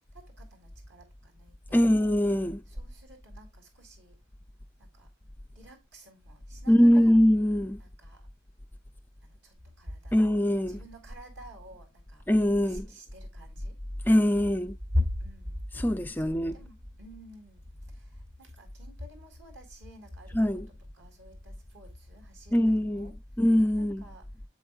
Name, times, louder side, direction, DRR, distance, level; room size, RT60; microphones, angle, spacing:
voice 1, 0.1-2.0 2.7-4.2 4.8-5.1 5.6-7.2 7.8-8.2 9.2-10.2 10.7-12.2 12.6-13.8 14.9-15.6 16.2-17.6 18.4-20.4 21.0-23.1 23.8-24.2, left 1 dB, 60° right, 4.3 m, -40 dB
voice 2, 1.7-2.6 6.7-7.8 10.1-10.8 12.3-12.9 14.1-14.8 15.7-16.6 20.3-20.7 22.5-23.1 23.4-24.0, equal, 10° left, 0.3 m, -23 dB
8.4 x 8.0 x 2.4 m
head